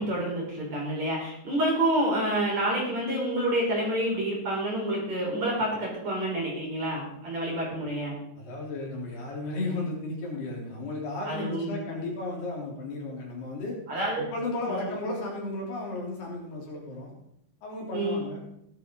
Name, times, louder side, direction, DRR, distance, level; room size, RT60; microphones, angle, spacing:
voice 1, 0.0-8.2 11.3-11.8 13.9-14.3 14.7-14.9 17.9-18.2, right 1 dB, 40° right, -3 dB, 5.2 m, -28 dB
voice 2, 8.4-13.8 14.2-17.1 17.6-18.4, left 2 dB, 60° left, -3 dB, 5.5 m, -34 dB
17.0 x 12.0 x 3.9 m, 0.76 s
omnidirectional pair, 5.2 m